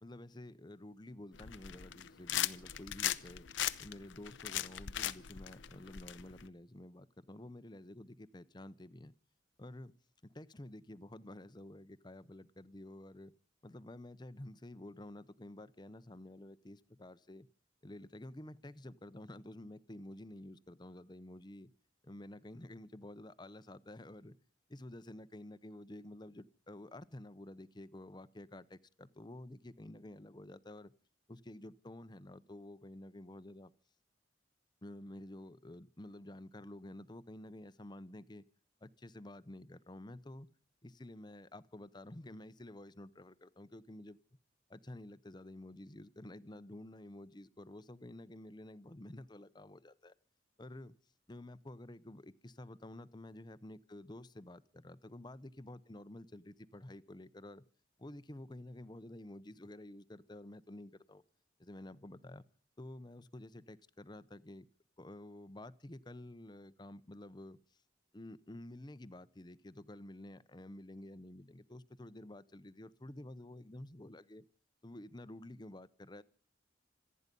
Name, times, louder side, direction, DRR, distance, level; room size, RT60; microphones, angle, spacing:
voice 1, 0.0-3.5 3.8-9.1 9.6-9.9 10.2-13.3 13.6-17.5 17.8-21.7 22.0-24.4 24.7-30.9 31.3-33.7 34.8-38.4 38.8-40.5 40.8-44.2 44.7-50.1 50.6-51.0 51.3-57.6 58.0-61.2 61.6-62.4 62.8-64.7 65.0-67.8 68.1-74.5 74.8-76.2, left 1 dB, 25° left, 0.8 m, -50 dB
sound 1, 1.3-6.5, left 11 dB, 80° left, 0.8 m, -38 dB
26.5 x 9.7 x 5.3 m
head